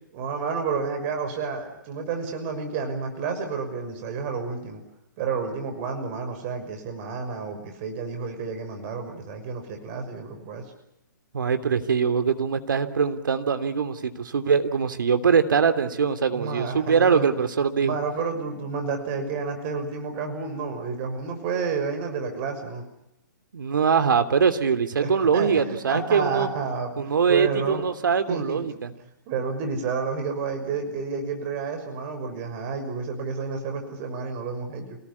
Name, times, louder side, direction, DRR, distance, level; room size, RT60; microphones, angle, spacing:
voice 1, 0.1-4.8 5.2-10.6 16.3-17.2 17.8-22.9 25.0-27.8 28.3-28.7 29.3-35.0, right 5 dB, 35° right, 5 dB, 6.1 m, -30 dB
voice 2, 11.3-18.0 23.5-26.5 27.0-28.9, right 6 dB, 75° right, 9 dB, 3.1 m, -22 dB
27.5 x 19.5 x 8.5 m, 0.83 s
hypercardioid pair, 145°, 11 cm